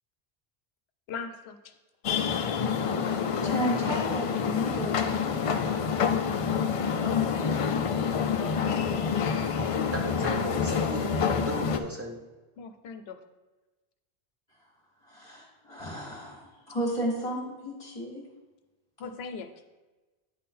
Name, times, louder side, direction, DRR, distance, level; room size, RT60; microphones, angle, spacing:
voice 1, 1.1-1.6 12.6-13.2 19.0-19.5, left 5 dB, 80° left, 7 dB, 0.9 m, -40 dB
sound 1, 2.0-11.8, left 6 dB, 55° left, 0.4 m, -27 dB
voice 2, 3.4-5.3 15.1-18.2, equal, 35° left, -6 dB, 1.5 m, -33 dB
voice 3, 9.7-12.2, right 1 dB, 15° right, 1 dB, 0.6 m, -36 dB
9.2 x 3.7 x 4.2 m, 1.2 s
omnidirectional pair, 1.0 m